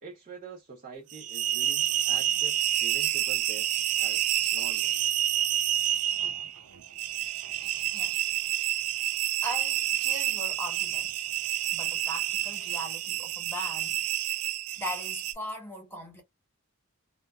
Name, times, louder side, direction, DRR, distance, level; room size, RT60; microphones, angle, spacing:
voice 1, 0.0-3.7 4.0-5.0, right 4 dB, 35° right, 0.6 m, -45 dB
sound 1, 1.1-15.3, right 12 dB, 80° right, 0.4 m, -29 dB
voice 2, 9.4-11.3 11.7-14.4 14.8-16.2, equal, 10° left, 1.0 m, -39 dB
2.8 x 2.3 x 2.3 m
head